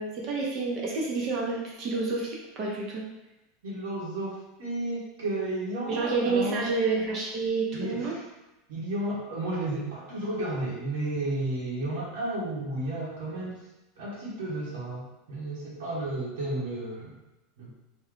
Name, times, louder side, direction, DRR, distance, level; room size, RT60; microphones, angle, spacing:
voice 1, 0.0-3.0 5.9-8.2, right 3 dB, 40° right, -2 dB, 0.7 m, -29 dB
voice 2, 3.6-6.7 7.7-8.2 8.7-13.6 14.0-17.2 17.6-17.7, right 1 dB, 90° right, -7 dB, 1.4 m, -32 dB
3.3 x 2.3 x 3.6 m, 0.97 s
supercardioid pair, 155°, 0 cm